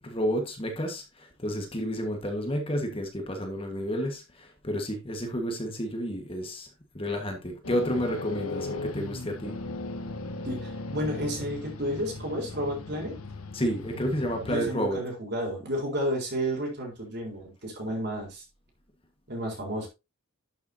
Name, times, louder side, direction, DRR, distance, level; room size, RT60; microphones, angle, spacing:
voice 1, 0.0-6.7 6.9-9.6 13.5-15.0, equal, 25° left, 1.5 m, -30 dB
sound 1, 7.6-14.7, left 2 dB, 85° left, 1.2 m, -38 dB
voice 2, 10.4-13.2 14.4-18.4 19.3-19.9, equal, 50° right, 4.1 m, -32 dB
11.5 x 6.7 x 2.8 m
head